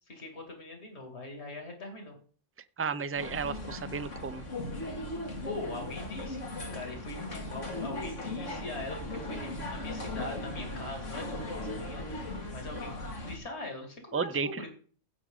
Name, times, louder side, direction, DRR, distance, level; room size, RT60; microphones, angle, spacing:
voice 1, 0.1-2.1 5.4-6.4 6.7-14.7, left 2 dB, 60° left, 3 dB, 2.9 m, -42 dB
voice 2, 2.8-4.4 14.1-14.6, right 5 dB, 15° right, 13 dB, 0.4 m, -33 dB
sound 1, 3.2-13.4, left 1 dB, 90° left, 2.6 m, -38 dB
16.5 x 6.2 x 3.8 m, 0.42 s
omnidirectional pair, 1.2 m